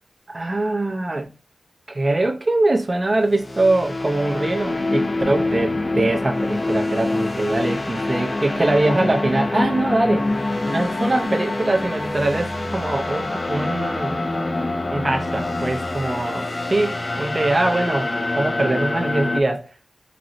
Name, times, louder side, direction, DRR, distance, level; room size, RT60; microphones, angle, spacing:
voice 1, 0.3-1.3 1.9-10.3 10.7-14.2 14.9-19.7, right 2 dB, 30° right, 0.4 m, -22 dB
sound 1, 3.1-19.4, left 2 dB, 30° left, 0.3 m, -25 dB
3.9 x 2.0 x 2.5 m
wide cardioid pair, 105°, 0 cm